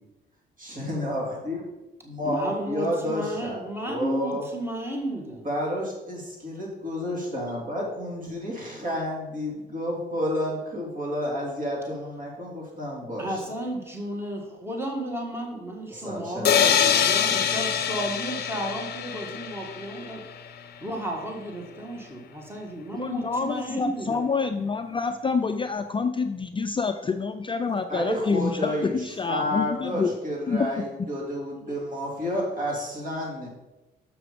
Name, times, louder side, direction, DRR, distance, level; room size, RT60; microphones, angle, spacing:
voice 1, 0.6-1.7 2.0-4.5 5.4-13.5 15.9-17.6 27.9-33.5, equal, 45° right, -2 dB, 3.1 m, -31 dB
voice 2, 2.2-5.5 13.2-20.2 20.5-24.2 31.7-31.8, right 1 dB, 10° right, 0 dB, 1.8 m, -33 dB
sound 1, 16.4-20.3, left 8 dB, 55° left, 0.7 m, -24 dB
voice 3, 22.9-30.2 30.5-30.8, left 4 dB, 25° left, 8 dB, 0.4 m, -27 dB
6.8 x 6.1 x 5.1 m, 1.0 s
cardioid pair, 90°, 20 cm